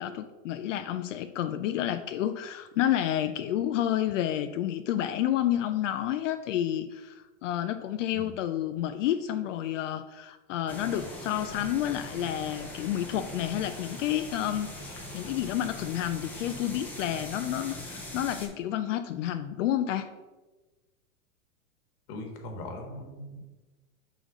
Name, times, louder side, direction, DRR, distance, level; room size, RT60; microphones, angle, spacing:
voice 1, 0.0-20.1, left 11 dB, 70° left, 9 dB, 0.5 m, -30 dB
sound 1, 10.7-18.5, left 1 dB, 5° left, 0.6 m, -41 dB
voice 2, 22.1-23.5, left 1 dB, 45° left, 3 dB, 1.4 m, -40 dB
4.9 x 3.9 x 5.0 m, 1.2 s
supercardioid pair, 140°, 39 cm